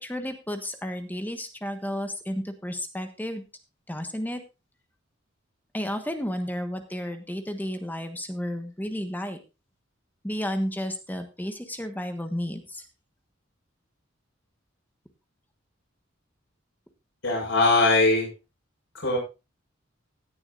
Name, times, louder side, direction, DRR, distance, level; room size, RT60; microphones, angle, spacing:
voice 1, 0.0-3.4 3.9-4.4 5.7-9.4 10.2-12.8, equal, 10° left, 7 dB, 1.3 m, -32 dB
voice 2, 17.2-18.3 18.9-19.2, left 2 dB, 70° left, -2 dB, 6.6 m, -21 dB
16.5 x 11.0 x 2.5 m, 0.28 s
head